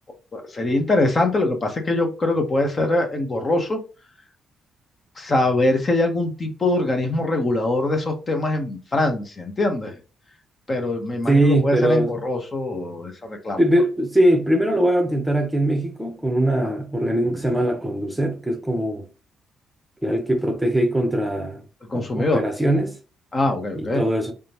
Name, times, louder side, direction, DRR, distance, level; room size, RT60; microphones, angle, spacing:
voice 1, 0.3-3.8 5.2-10.0 10.7-13.6 21.9-22.4 23.3-24.0, left 2 dB, 35° left, 0.9 m, -23 dB
voice 2, 11.3-12.2 13.6-19.0 20.0-21.6 21.9-23.0 23.7-24.3, right 1 dB, 5° right, 0.8 m, -21 dB
3.6 x 3.4 x 2.9 m
cardioid pair, 90°, 0 cm